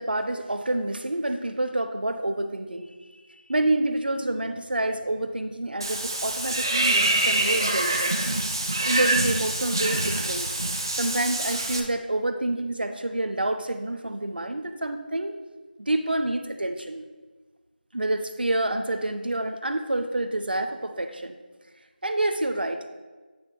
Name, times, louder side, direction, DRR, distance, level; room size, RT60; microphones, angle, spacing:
voice 1, 0.0-3.2 3.5-8.1 8.8-10.5 11.0-15.4 15.8-17.0 17.9-21.4 22.0-22.9, right 1 dB, 65° right, 8 dB, 0.6 m, -28 dB
Water / Bathtub (filling or washing), 5.8-11.8, right 2 dB, 25° right, 0.4 m, -25 dB
8.8 x 3.0 x 6.2 m, 1.3 s
figure-of-eight pair, 170°, 6 cm